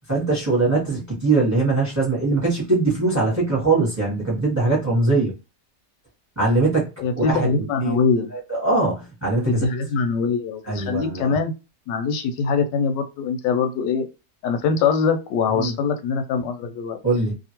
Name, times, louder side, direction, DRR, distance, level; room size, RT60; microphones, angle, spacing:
voice 1, 0.1-5.3 6.4-6.9 7.1-7.5 7.8-8.0 8.3-9.6 10.6-11.4 15.5-15.7 17.0-17.3, right 3 dB, 15° right, 0.9 m, -21 dB
voice 2, 7.0-8.3 9.5-11.5 11.9-14.1 14.4-17.0, left 5 dB, 90° left, 1.2 m, -23 dB
2.8 x 2.5 x 2.8 m
omnidirectional pair, 1.8 m